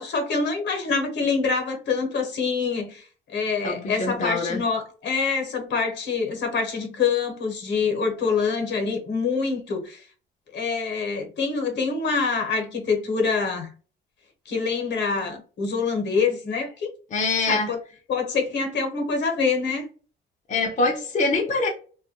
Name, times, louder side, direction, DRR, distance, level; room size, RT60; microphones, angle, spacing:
voice 1, 0.0-10.0 10.5-13.7 14.5-16.9 17.5-17.8 18.1-19.9, left 4 dB, 65° left, 0.9 m, -25 dB
voice 2, 3.6-4.6 17.1-17.7 20.5-21.7, left 3 dB, 40° left, 0.6 m, -24 dB
2.2 x 2.1 x 2.8 m
cardioid pair, 90°, 20 cm